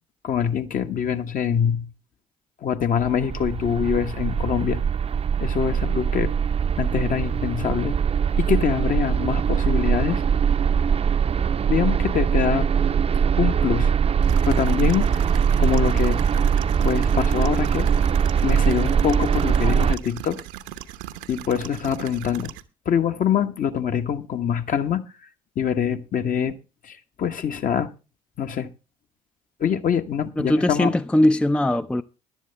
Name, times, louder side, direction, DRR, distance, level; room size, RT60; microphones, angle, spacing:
voice 1, 0.2-1.9 2.6-4.8 5.4-6.3 6.8-8.0 8.4-10.2 11.7-12.7 13.4-13.9 14.4-15.3 15.6-16.2 16.8-17.9 18.4-20.4 21.3-22.5 22.8-25.0 25.5-26.6 26.8-27.9 28.4-28.7 29.6-30.9, left 8 dB, 45° left, 1.3 m, -24 dB
sound 1, 3.0-20.0, right 7 dB, 30° right, 0.7 m, -22 dB
sound 2, 14.2-22.6, right 13 dB, 65° right, 0.9 m, -38 dB
voice 2, 30.4-32.0, left 1 dB, 5° left, 0.5 m, -20 dB
15.0 x 11.5 x 3.4 m
figure-of-eight pair, 55°, 19 cm